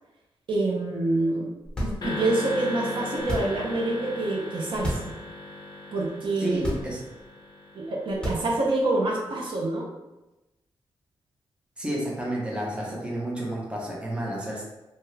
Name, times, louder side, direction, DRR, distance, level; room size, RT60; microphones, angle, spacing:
voice 1, 0.5-1.5 1.8-5.1 5.9-6.6 7.7-9.9, right 2 dB, 60° right, -2 dB, 0.6 m, -26 dB
sound 1, 1.6-2.3 3.2-3.7 4.7-5.2 5.6-5.7 6.5-7.2 8.1-8.8, equal, 10° left, 0.9 m, -32 dB
sound 2, 2.0-8.4, left 2 dB, 50° left, 0.5 m, -36 dB
voice 2, 6.4-7.0 11.8-14.6, right 1 dB, 10° right, -3 dB, 0.6 m, -31 dB
2.8 x 2.2 x 3.1 m, 0.99 s
wide cardioid pair, 120°, 9 cm